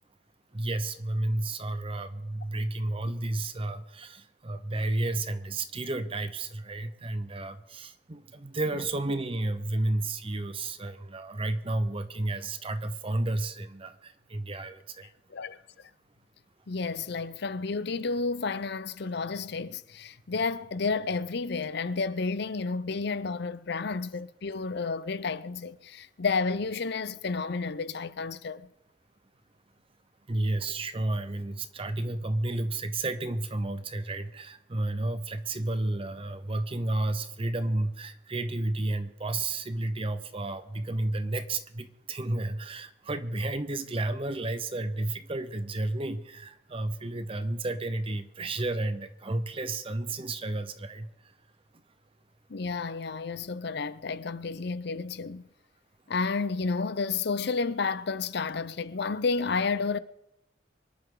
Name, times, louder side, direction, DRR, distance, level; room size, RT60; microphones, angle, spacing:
voice 1, 0.5-15.1 30.3-51.1, right 2 dB, 30° right, 0.7 m, -32 dB
voice 2, 16.7-28.7 52.5-55.4 56.1-60.0, left 4 dB, 55° left, 0.6 m, -31 dB
25.0 x 11.0 x 3.8 m
head